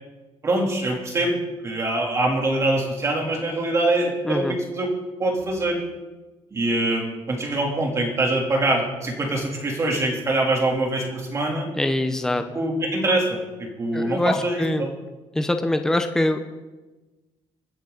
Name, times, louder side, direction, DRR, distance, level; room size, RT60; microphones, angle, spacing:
voice 1, 0.4-1.4 1.6-4.9 5.2-5.8 6.5-11.7 12.5-14.9, right 2 dB, 25° right, 0 dB, 3.3 m, -24 dB
voice 2, 4.2-4.6 11.8-12.4 13.9-14.9 15.3-16.4, left 1 dB, 5° left, 7 dB, 0.9 m, -23 dB
25.0 x 10.0 x 4.0 m, 1.2 s
cardioid pair, 155°, 11 cm